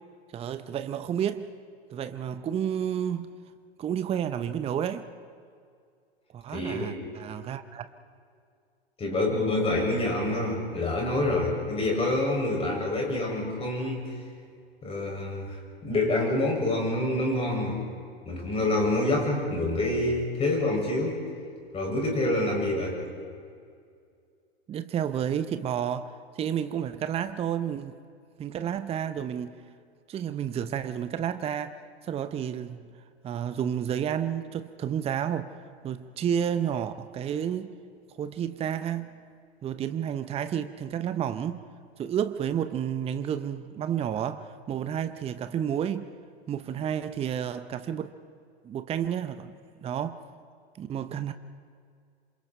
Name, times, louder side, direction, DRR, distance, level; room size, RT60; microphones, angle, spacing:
voice 1, 0.3-1.5 1.9-3.3 3.8-5.1 6.3-7.9 24.7-28.0 28.4-29.6 30.1-32.9 33.2-35.5 35.8-37.7 38.1-39.1 39.6-41.6 42.0-46.1 46.5-48.2 48.6-49.5 49.8-50.2 50.8-51.3, right 9 dB, 20° right, 0.8 m, -31 dB
voice 2, 6.5-6.9 9.0-14.1 14.8-17.8 18.3-21.2 21.7-23.0, left 2 dB, 20° left, 7.0 m, -27 dB
27.5 x 27.0 x 4.5 m
figure-of-eight pair, 100°, 32 cm